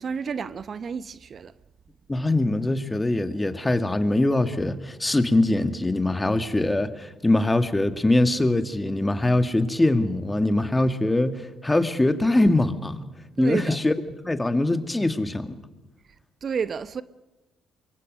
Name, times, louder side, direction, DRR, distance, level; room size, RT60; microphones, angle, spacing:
voice 1, 0.0-1.5 13.4-13.8 16.4-17.0, right 6 dB, 50° right, 0.8 m, -30 dB
voice 2, 2.1-13.0 13.4-13.9 14.2-15.5, left 2 dB, 15° left, 2.2 m, -22 dB
24.0 x 22.5 x 6.5 m
hypercardioid pair, 55°, 0 cm